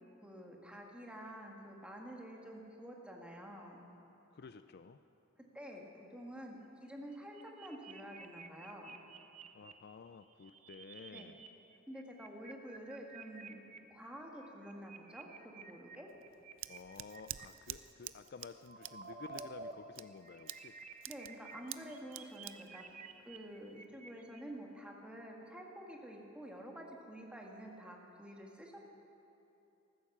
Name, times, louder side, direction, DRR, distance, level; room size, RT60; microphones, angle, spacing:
voice 1, 0.2-3.9 5.5-8.9 11.1-11.3 11.9-13.6 13.9-16.1 21.1-28.8, equal, 5° right, -1 dB, 1.8 m, -49 dB
voice 2, 4.3-5.0 9.5-11.4 16.7-20.7, left 5 dB, 55° left, 10 dB, 0.4 m, -52 dB
sound 1, 7.1-9.7 10.2-11.5 11.7-13.8 14.4-17.5 18.2-19.7 20.0-24.4, right 4 dB, 40° right, 0.8 m, -52 dB
Scissors, 16.1-23.8, right 14 dB, 80° right, 0.5 m, -49 dB
14.0 x 13.5 x 7.2 m, 2.9 s
head